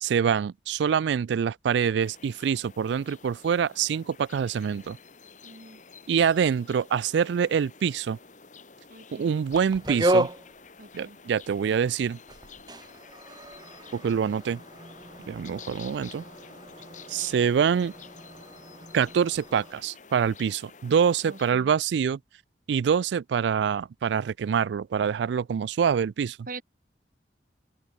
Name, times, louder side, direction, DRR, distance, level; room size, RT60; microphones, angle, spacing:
voice 1, 0.0-5.0 6.1-8.2 9.2-10.3 10.9-12.2 13.9-14.6 15.2-16.2 17.1-17.9 18.9-22.2 22.7-26.4, right 7 dB, 75° right, 0.3 m, -25 dB
sound 1, 2.0-21.5, left 5 dB, 45° left, 2.2 m, -50 dB
voice 2, 5.4-5.8 8.9-9.3 10.8-11.2 21.3-21.7 26.5-26.6, right 3 dB, 50° right, 3.4 m, -43 dB
sound 2, 9.5-11.7 12.0-19.8, right 1 dB, 25° right, 1.7 m, -33 dB
head